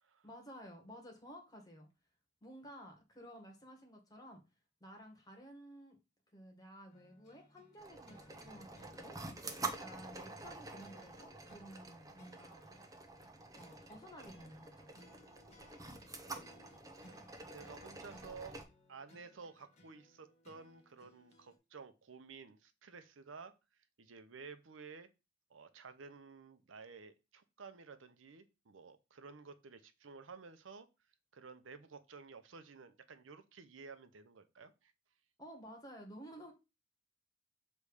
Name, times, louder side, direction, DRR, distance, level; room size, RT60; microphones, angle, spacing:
voice 1, 0.2-1.9 2.4-4.4 4.8-6.0 6.3-9.2 9.6-12.9 13.5-14.9 35.4-36.5, equal, 20° left, 2 dB, 1.7 m, -54 dB
sound 1, 6.9-21.6, equal, 35° left, 1.5 m, -64 dB
sound 2, 7.8-18.6, right 3 dB, 20° right, 0.8 m, -48 dB
voice 2, 17.5-18.6 18.9-23.5 24.0-25.1 25.5-30.9 31.3-34.9, right 5 dB, 80° right, 11 dB, 0.7 m, -53 dB
6.8 x 3.2 x 4.9 m, 0.27 s
head